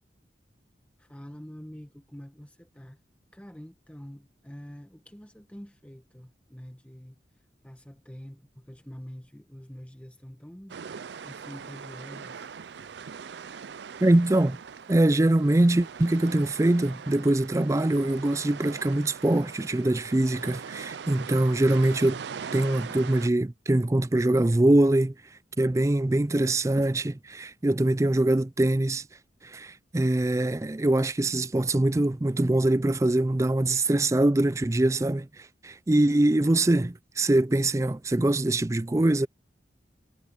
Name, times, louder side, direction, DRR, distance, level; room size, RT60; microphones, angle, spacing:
voice 1, 1.0-3.0 3.3-7.2 7.6-10.8 11.2-12.5, equal, 5° left, 1.2 m, -45 dB
sound 1, 10.7-23.3, right 6 dB, 80° right, 0.5 m, -41 dB
voice 2, 14.0-14.6 14.9-22.2 22.5-25.1 25.6-29.0 29.4-39.3, right 1 dB, 15° right, 0.4 m, -23 dB
head